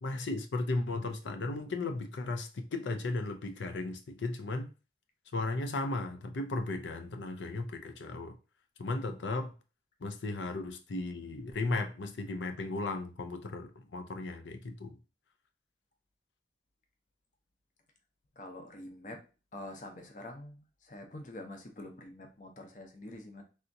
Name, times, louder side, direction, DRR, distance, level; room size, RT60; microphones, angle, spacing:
voice 1, 0.0-4.7 5.3-8.4 8.8-9.5 10.0-15.0, left 2 dB, 90° left, 0.5 m, -35 dB
voice 2, 18.4-19.2 19.5-23.4, left 1 dB, 45° left, 0.6 m, -46 dB
3.4 x 2.8 x 2.6 m
head